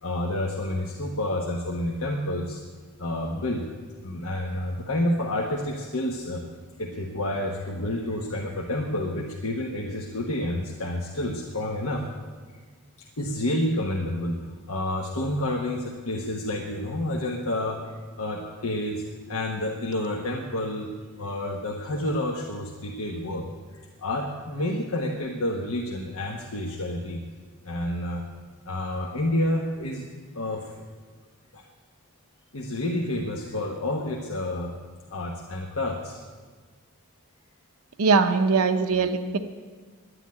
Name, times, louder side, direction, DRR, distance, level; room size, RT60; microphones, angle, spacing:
voice 1, 0.0-2.6 3.0-3.7 4.0-6.4 6.8-12.0 13.0-20.9 21.2-23.5 23.7-27.2 27.6-28.2 28.7-30.1 30.3-30.8 31.5-31.6 32.5-34.7 35.1-36.2, left 1 dB, 75° left, 0 dB, 1.3 m, -29 dB
voice 2, 38.0-39.4, right 4 dB, 80° right, 8 dB, 0.7 m, -21 dB
11.0 x 10.0 x 9.7 m, 1.5 s
head